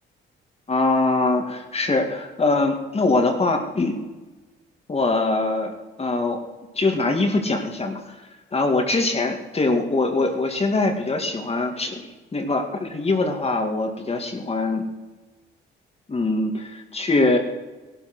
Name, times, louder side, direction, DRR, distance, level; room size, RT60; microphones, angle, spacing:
voice 1, 0.7-4.0 4.9-5.7 6.0-6.4 6.8-8.2 8.5-14.8 16.1-17.4, left 2 dB, 30° left, 4 dB, 2.3 m, -23 dB
17.5 x 11.5 x 6.3 m, 1.2 s
cardioid pair, 90°, 20 cm